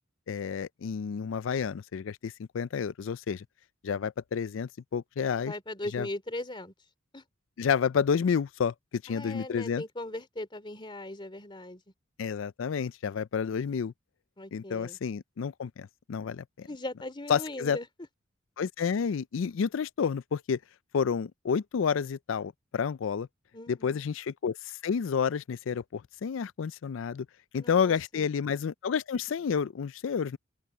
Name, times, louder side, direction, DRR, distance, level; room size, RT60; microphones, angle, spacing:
voice 1, 0.3-3.5 3.8-5.5 5.9-6.1 7.6-9.8 12.2-13.9 14.5-16.7 17.3-17.8 18.6-20.6 20.9-23.3 23.7-27.3 27.5-30.4, left 6 dB, 80° left, 0.4 m, -30 dB
voice 2, 5.3-6.7 7.1-7.2 9.1-11.8 14.4-15.0 16.7-17.9 23.5-24.0 27.6-28.3, left 1 dB, 25° left, 3.0 m, -39 dB
open air
head